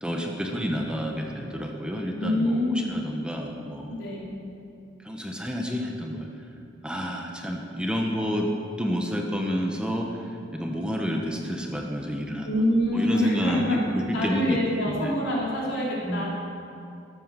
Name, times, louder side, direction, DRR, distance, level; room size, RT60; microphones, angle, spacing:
voice 1, 0.0-4.0 5.0-6.3 6.8-8.5 8.8-12.5 12.9-14.6 14.9-15.1 16.0-16.2, equal, 5° right, 1 dB, 1.0 m, -30 dB
voice 2, 2.2-2.9 3.9-4.3 12.4-13.8 14.1-16.3, left 1 dB, 85° left, -5 dB, 3.7 m, -25 dB
13.0 x 8.6 x 6.8 m, 2.5 s
head